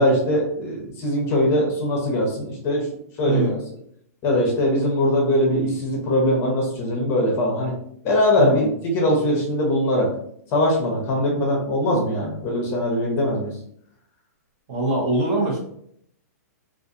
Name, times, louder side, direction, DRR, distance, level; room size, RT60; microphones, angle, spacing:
voice 1, 0.0-2.9 3.2-3.6 4.2-7.7 8.0-8.7 8.9-10.1 10.5-13.5, left 1 dB, 30° left, -1 dB, 0.8 m, -21 dB
voice 2, 3.2-3.6 8.4-8.7 14.7-15.6, right 2 dB, 35° right, -3 dB, 0.9 m, -22 dB
2.5 x 2.4 x 2.6 m, 0.68 s
hypercardioid pair, 140°, 9 cm